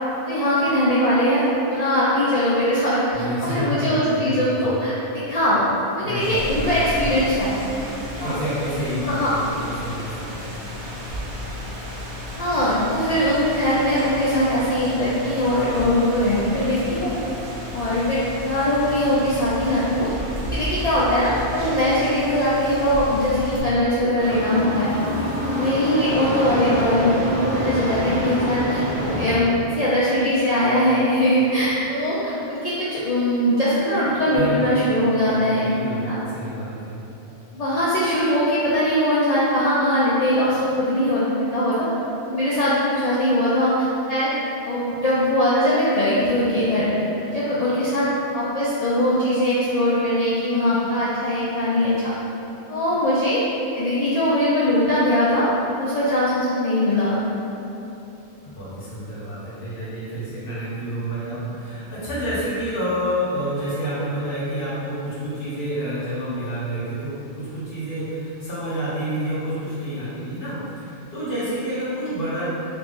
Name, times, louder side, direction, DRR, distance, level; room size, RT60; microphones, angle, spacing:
voice 1, 0.2-1.4 1.7-5.6 6.0-7.5 8.2-8.3 9.0-9.3 12.4-17.2 17.7-20.1 20.5-24.9 25.5-35.7 36.0-36.2 37.5-41.9 42.3-43.7 44.1-44.3 44.7-46.9 47.2-48.1 48.3-52.1 52.7-53.4 53.7-55.5 55.8-57.2, left 1 dB, 90° left, -9 dB, 0.3 m, -21 dB
voice 2, 3.1-4.7 5.2-5.3 6.0-7.0 8.2-10.7 34.3-37.0 58.6-72.5, equal, 50° left, -10 dB, 1.2 m, -29 dB
Rain, 6.2-23.6, left 1 dB, 55° right, 0.7 m, -33 dB
sound 1, 24.2-29.3, equal, 75° right, 1.0 m, -26 dB
3.0 x 2.4 x 3.5 m, 3.0 s
omnidirectional pair, 1.2 m